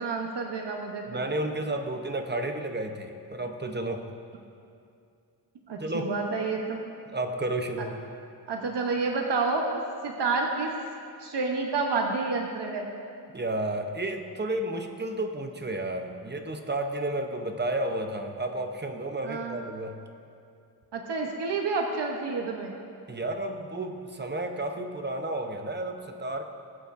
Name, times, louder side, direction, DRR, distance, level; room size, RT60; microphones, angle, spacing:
voice 1, 0.0-1.2 5.7-6.8 7.8-7.9 8.5-9.6 10.0-10.7 11.2-12.9 19.2-19.6 20.9-22.7, right 4 dB, 85° right, 1 dB, 1.0 m, -29 dB
voice 2, 1.1-4.0 5.8-6.1 7.1-8.0 13.3-20.0 23.1-26.4, right 1 dB, 25° right, 5 dB, 0.8 m, -32 dB
19.0 x 8.1 x 2.6 m, 2.4 s
wide cardioid pair, 125°, 41 cm